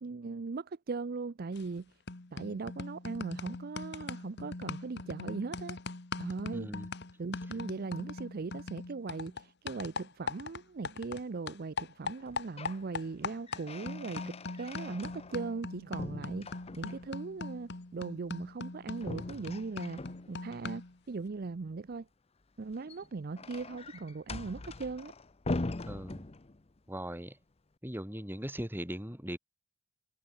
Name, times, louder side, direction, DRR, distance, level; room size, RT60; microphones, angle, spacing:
voice 1, 0.0-1.9 2.3-5.8 6.2-6.7 7.2-20.0 20.3-22.1 22.6-25.1, right 4 dB, 50° right, 0.5 m, -39 dB
sound 1, 1.6-1.8 2.1-11.2 11.5-21.0, left 3 dB, 55° left, 1.4 m, -41 dB
voice 2, 6.5-6.9 25.9-26.2 26.9-27.4 27.8-29.4, equal, 10° right, 3.3 m, -39 dB
sound 2, 12.2-12.8 13.2-15.7 16.0-17.2 19.0-20.6 22.6-26.8, left 2 dB, 30° left, 0.7 m, -41 dB
head